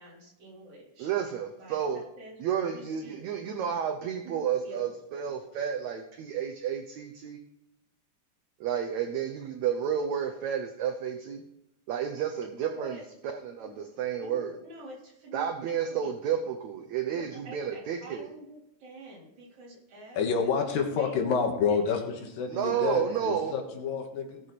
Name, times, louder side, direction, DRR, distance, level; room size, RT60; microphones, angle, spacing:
voice 1, 0.0-1.1 1.6-2.4 2.7-3.3 4.2-5.0 12.5-13.0 13.6-13.7 14.2-16.1 17.1-21.2 21.5-22.2 22.9-23.2, right 1 dB, 50° right, -5 dB, 5.1 m, -48 dB
voice 2, 1.0-2.0 2.4-7.4 8.6-11.4 11.9-13.0 13.3-14.5 15.3-18.3 22.5-23.5, right 8 dB, 75° right, 4 dB, 1.7 m, -31 dB
voice 3, 20.2-22.0 22.4-24.4, left 6 dB, 70° left, 3 dB, 3.1 m, -28 dB
18.0 x 7.4 x 4.1 m, 0.84 s
omnidirectional pair, 4.3 m